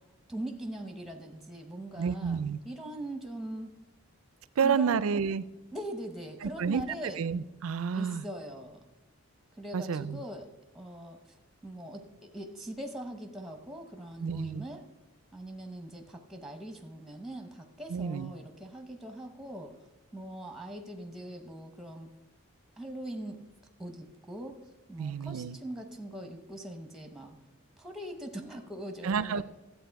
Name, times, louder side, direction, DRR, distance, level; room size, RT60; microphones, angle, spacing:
voice 1, 0.3-2.4 2.6-3.7 4.6-5.0 5.7-7.2 7.9-8.8 9.6-11.2 11.6-14.8 15.3-19.7 20.1-22.1 22.8-23.4 23.8-24.6 24.9-27.4 27.8-29.4, right 1 dB, ahead, 6 dB, 0.8 m, -41 dB
voice 2, 2.0-2.6 4.6-5.4 6.4-6.8 7.2-8.2 9.7-10.2 14.2-14.6 17.9-18.3 25.0-25.6 29.0-29.4, right 6 dB, 75° right, 17 dB, 0.4 m, -30 dB
12.0 x 8.1 x 4.6 m, 1.1 s
head